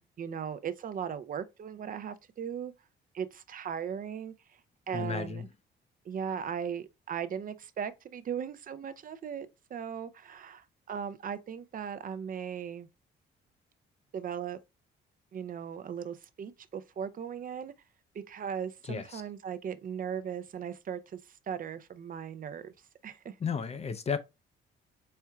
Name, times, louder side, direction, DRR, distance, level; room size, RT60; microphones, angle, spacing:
voice 1, 0.0-2.7 3.1-4.3 4.9-5.5 6.1-12.9 14.1-14.6 15.3-17.7 18.1-21.2 21.5-22.7 23.0-23.3, right 8 dB, 45° right, 0.4 m, -38 dB
voice 2, 4.9-5.5 18.8-19.2 23.4-24.2, left 6 dB, 30° left, 0.5 m, -33 dB
4.4 x 3.5 x 2.3 m
cardioid pair, 90°, 20 cm